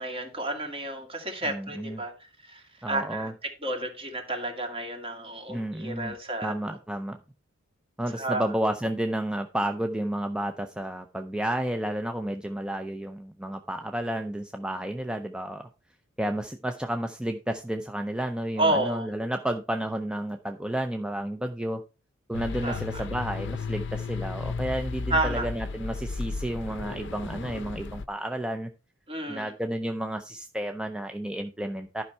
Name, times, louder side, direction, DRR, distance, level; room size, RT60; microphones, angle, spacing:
voice 1, 0.0-6.8 8.1-8.5 18.6-19.1 22.6-23.0 25.1-25.5 29.1-29.5, right 2 dB, 30° right, 4 dB, 2.1 m, -31 dB
voice 2, 1.5-2.0 2.8-3.3 5.5-6.1 6.4-7.2 8.0-15.7 16.2-21.8 22.3-28.7 29.3-32.0, right 1 dB, 5° right, 6 dB, 0.5 m, -31 dB
sound 1, 22.3-28.1, left 4 dB, 65° left, 0.6 m, -34 dB
11.5 x 5.4 x 4.4 m, 0.32 s
head